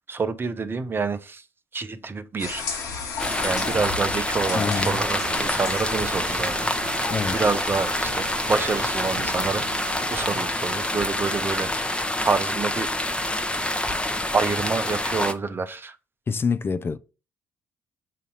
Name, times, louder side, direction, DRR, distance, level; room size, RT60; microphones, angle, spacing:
voice 1, 0.1-1.4 1.7-2.6 3.4-6.7 7.3-12.9 14.3-16.0, right 4 dB, 35° right, 0.8 m, -27 dB
sound 1, 2.4-9.6, left 5 dB, 70° left, 1.6 m, -35 dB
sound 2, 3.2-15.3, left 1 dB, 15° left, 0.9 m, -27 dB
voice 2, 4.5-5.0 7.1-7.4 16.3-17.0, left 5 dB, 35° left, 0.5 m, -26 dB
sound 3, 4.5-10.5, right 8 dB, 65° right, 0.6 m, -39 dB
7.4 x 2.8 x 5.3 m
hypercardioid pair, 50°, 7 cm